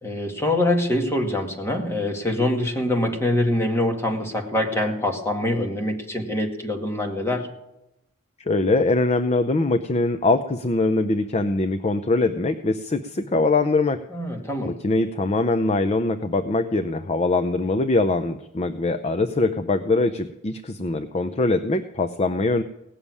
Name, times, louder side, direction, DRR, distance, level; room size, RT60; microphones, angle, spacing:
voice 1, 0.0-7.5 13.1-13.2 14.1-14.7, left 1 dB, 10° left, 1 dB, 2.2 m, -24 dB
voice 2, 8.5-14.0 14.7-22.6, left 2 dB, 30° left, 9 dB, 0.5 m, -22 dB
17.5 x 7.2 x 9.7 m, 0.88 s
head